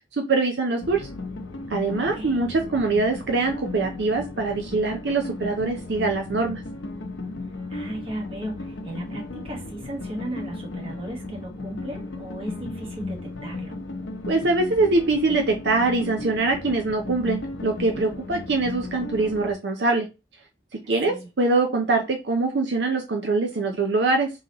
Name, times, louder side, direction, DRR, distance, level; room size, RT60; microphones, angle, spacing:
voice 1, 0.1-1.1 1.7-6.6 14.3-20.1 20.9-24.3, right 3 dB, 70° right, 0.6 m, -23 dB
sound 1, 0.8-19.5, left 2 dB, 90° left, 0.8 m, -35 dB
voice 2, 1.9-2.5 7.7-13.8 21.0-21.3, right 1 dB, 30° right, 1.1 m, -36 dB
3.8 x 2.9 x 2.9 m
head